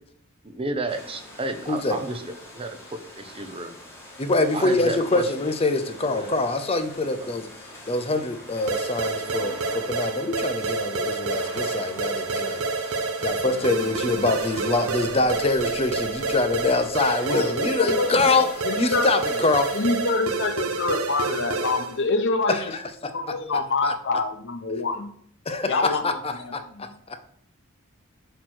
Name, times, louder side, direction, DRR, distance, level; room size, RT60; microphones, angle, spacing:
voice 1, 0.4-3.8 4.5-5.2 6.1-6.3 7.2-7.3 17.6-18.2, right 2 dB, 25° right, 7 dB, 0.7 m, -32 dB
sound 1, 0.9-15.7, left 1 dB, 10° left, 1.9 m, -45 dB
voice 2, 1.7-2.0 4.2-7.5 7.9-12.6 13.2-18.5 18.8-19.7 22.5-23.1 23.8-23.9 25.5-27.2, left 3 dB, 25° left, 8 dB, 0.7 m, -24 dB
sound 2, 8.7-22.0, right 3 dB, 75° right, 0.7 m, -28 dB
sound 3, 13.3-20.3, left 3 dB, 80° left, 1.7 m, -44 dB
voice 3, 17.8-19.4 19.7-22.6 23.1-25.1 25.7-26.8, left 3 dB, 55° left, 7 dB, 0.9 m, -26 dB
7.7 x 3.1 x 6.2 m, 0.62 s
head